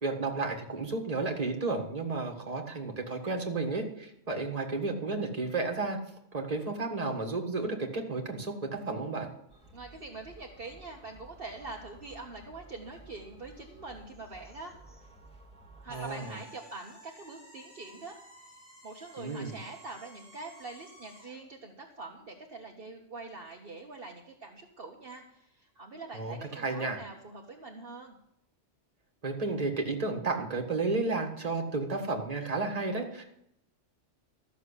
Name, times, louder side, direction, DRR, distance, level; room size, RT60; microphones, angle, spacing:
voice 1, 0.0-6.0 6.3-9.3 15.9-16.4 19.2-19.6 26.1-27.0 29.2-33.3, right 3 dB, 30° right, 2 dB, 1.9 m, -32 dB
sound 1, 9.5-16.1, right 1 dB, 5° left, 2.1 m, -54 dB
voice 2, 9.7-14.7 15.8-18.2 18.8-28.1, right 3 dB, 50° right, 0 dB, 1.5 m, -44 dB
sound 2, 15.9-21.4, right 1 dB, 60° left, 7.3 m, -54 dB
13.5 x 6.8 x 8.3 m, 0.77 s
omnidirectional pair, 1.2 m